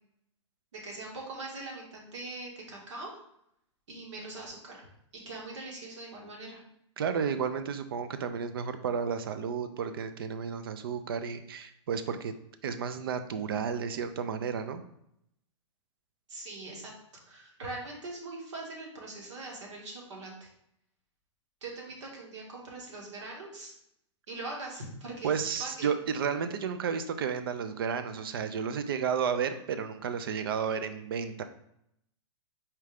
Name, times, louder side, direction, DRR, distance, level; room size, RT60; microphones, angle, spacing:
voice 1, 0.7-3.1 3.9-4.8 5.1-6.6 16.3-16.9 17.3-20.5 21.6-23.7 24.3-25.9, right 2 dB, 65° right, -2 dB, 1.7 m, -42 dB
voice 2, 7.0-12.3 12.6-14.8 25.2-31.4, right 7 dB, 50° right, 10 dB, 0.4 m, -32 dB
4.3 x 3.6 x 3.3 m, 0.75 s
hypercardioid pair, 180°, 16 cm